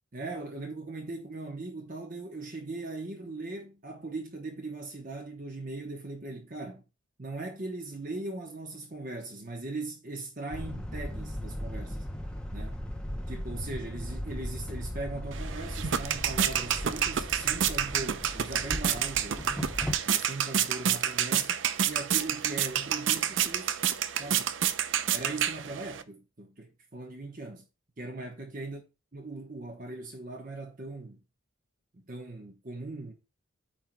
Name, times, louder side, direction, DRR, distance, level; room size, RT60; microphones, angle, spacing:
voice 1, 0.1-6.8 7.2-12.1 12.5-12.8 13.3-19.7 20.0-23.8 24.2-24.5 25.1-27.7 28.0-28.8 29.1-31.2 31.9-33.1, right 2 dB, 40° right, 1.0 m, -39 dB
sound 1, 10.5-20.0, equal, 5° left, 0.7 m, -37 dB
sound 2, 15.3-26.0, right 9 dB, 60° right, 0.5 m, -29 dB
13.0 x 4.6 x 2.2 m
head